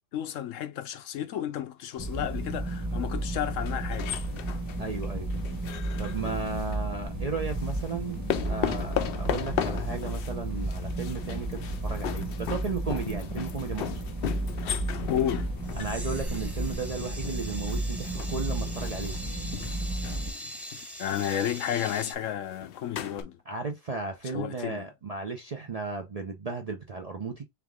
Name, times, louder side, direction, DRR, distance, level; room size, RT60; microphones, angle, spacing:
voice 1, 0.1-4.2 15.1-15.5 21.0-23.4 24.2-24.9, left 10 dB, 90° left, 1.1 m, -32 dB
sound 1, 2.0-20.3, right 1 dB, 15° right, 1.3 m, -33 dB
sound 2, 3.6-6.8 7.5-23.2, left 10 dB, 60° left, 0.6 m, -37 dB
voice 2, 4.8-5.3 6.0-14.0 15.8-19.2 23.5-27.4, right 4 dB, 45° right, 0.5 m, -35 dB
sound 3, 15.6-22.1, equal, ahead, 1.0 m, -42 dB
3.6 x 3.5 x 3.6 m
omnidirectional pair, 1.3 m